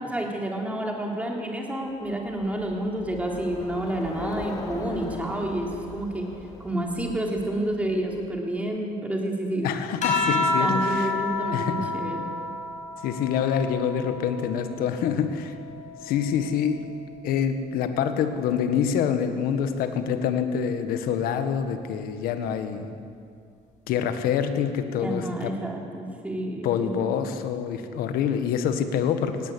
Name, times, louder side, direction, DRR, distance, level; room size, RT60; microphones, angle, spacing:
voice 1, 0.0-6.3 6.6-9.7 10.6-12.3 25.0-27.1, right 1 dB, 10° right, 0 dB, 3.6 m, -29 dB
Bicycle, 2.0-8.5, left 3 dB, 25° left, 3.3 m, -41 dB
voice 2, 9.6-11.1 11.5-11.9 13.0-15.5 16.0-16.8 17.1-22.9 23.9-25.5 26.6-29.5, left 8 dB, 85° left, 8 dB, 1.6 m, -26 dB
sound 1, 10.0-14.8 15.3-17.0 18.2-18.7, left 2 dB, 55° left, 5.7 m, -30 dB
19.0 x 17.5 x 8.6 m, 2.4 s
cardioid pair, 135°, 15 cm